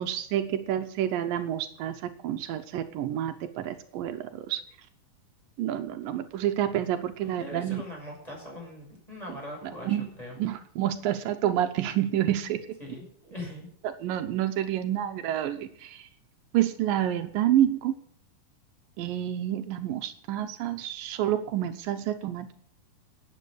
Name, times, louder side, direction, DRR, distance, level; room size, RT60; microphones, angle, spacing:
voice 1, 0.0-4.6 5.6-7.8 9.8-10.1 10.4-12.6 14.0-16.1 16.5-18.0 19.0-22.5, right 11 dB, 80° right, 8 dB, 2.6 m, -28 dB
voice 2, 7.2-10.4 12.8-13.7, left 1 dB, 10° left, -2 dB, 6.9 m, -41 dB
12.5 x 9.4 x 8.1 m, 0.64 s
omnidirectional pair, 3.9 m